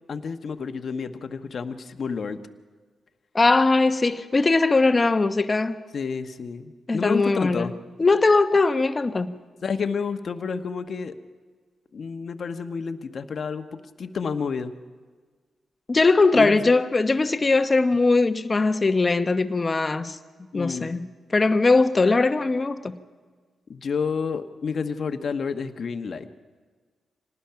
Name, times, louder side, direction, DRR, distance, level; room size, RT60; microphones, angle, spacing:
voice 1, 0.1-2.4 5.9-7.7 9.6-11.1 11.9-14.7 16.3-16.7 20.5-20.9 23.7-26.3, left 5 dB, 60° left, 8 dB, 1.1 m, -30 dB
voice 2, 3.3-5.8 6.9-7.7 8.0-9.4 15.9-20.2 20.5-23.0, left 3 dB, 35° left, 9 dB, 1.1 m, -20 dB
25.5 x 19.0 x 5.8 m, 1.5 s
cardioid pair, 65°, 0 cm